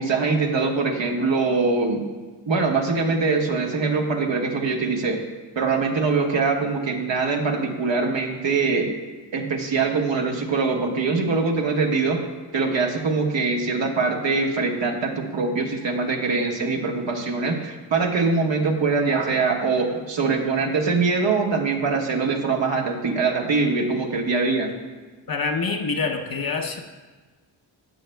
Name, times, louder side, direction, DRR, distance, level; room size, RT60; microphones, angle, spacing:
voice 1, 0.0-2.1 2.4-5.2 5.5-8.9 9.3-12.2 12.5-24.7, right 4 dB, 60° right, 1 dB, 1.4 m, -23 dB
voice 2, 25.3-26.8, left 4 dB, 45° left, 4 dB, 0.9 m, -26 dB
11.5 x 7.6 x 2.3 m, 1.3 s
supercardioid pair, 40°, 50 cm